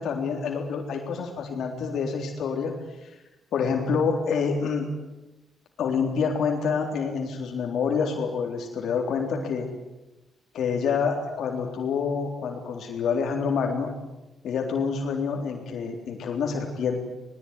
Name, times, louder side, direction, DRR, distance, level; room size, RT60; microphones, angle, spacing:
voice 1, 0.0-2.8 3.0-3.1 3.5-4.9 5.8-9.7 10.5-13.9 14.4-17.0, left 5 dB, 65° left, 2 dB, 3.7 m, -27 dB
22.0 x 21.0 x 9.8 m, 1.0 s
cardioid pair, 135°, 0 cm